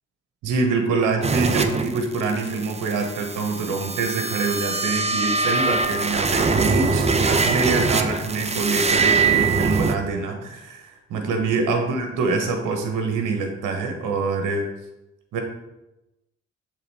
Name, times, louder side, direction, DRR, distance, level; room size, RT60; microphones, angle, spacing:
voice 1, 0.4-14.7 15.3-15.4, right 4 dB, 65° right, 4 dB, 1.2 m, -25 dB
sound 1, 1.2-9.9, right 4 dB, 20° right, 0.7 m, -23 dB
7.1 x 3.8 x 4.8 m, 0.95 s
hypercardioid pair, 40°, 33 cm